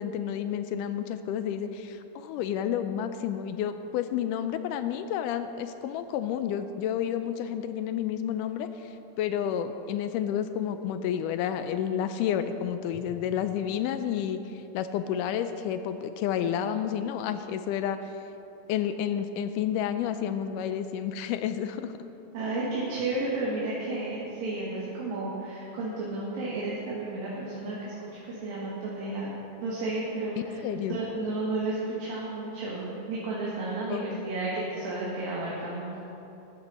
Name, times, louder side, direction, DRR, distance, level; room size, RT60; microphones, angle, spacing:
voice 1, 0.0-8.9 9.2-18.1 18.7-21.9 30.6-31.0 33.9-34.0, left 9 dB, 80° left, 10 dB, 2.0 m, -30 dB
voice 2, 22.3-30.6 30.9-36.0, right 2 dB, 85° right, -7 dB, 3.6 m, -32 dB
13.5 x 13.5 x 4.2 m, 3.0 s
omnidirectional pair, 3.9 m